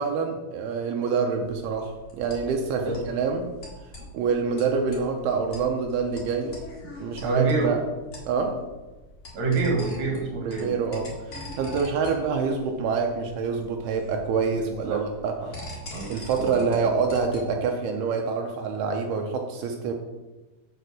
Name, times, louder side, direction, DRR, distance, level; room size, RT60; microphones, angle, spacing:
voice 1, 0.0-3.5 4.1-6.6 7.0-7.8 8.3-8.6 10.4-15.5 16.1-19.9, right 5 dB, 80° right, 3 dB, 2.6 m, -26 dB
sound 1, 1.4-17.6, left 1 dB, 55° left, 0.7 m, -43 dB
voice 2, 7.2-7.7 9.3-10.7 14.6-15.0 15.4-15.5 15.9-16.1 16.4-16.9, right 3 dB, 40° right, 0 dB, 2.1 m, -27 dB
6.7 x 5.8 x 6.2 m, 1.2 s
omnidirectional pair, 4.6 m